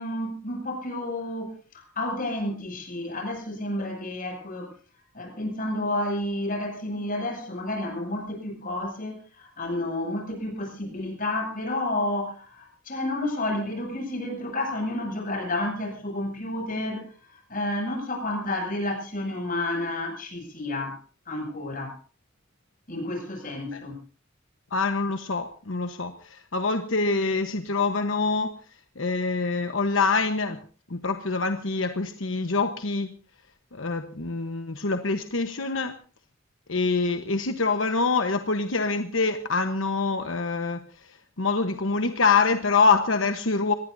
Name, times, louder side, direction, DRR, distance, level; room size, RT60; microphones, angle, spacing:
voice 1, 0.0-4.7 5.1-21.0 21.3-22.0 22.9-24.0, left 1 dB, 45° left, 2 dB, 7.7 m, -31 dB
voice 2, 24.7-28.5 29.0-30.6 30.9-33.2 33.7-36.0 36.7-40.8 41.4-43.7, left 4 dB, 80° left, 7 dB, 1.2 m, -25 dB
26.0 x 19.5 x 2.7 m, 0.36 s
head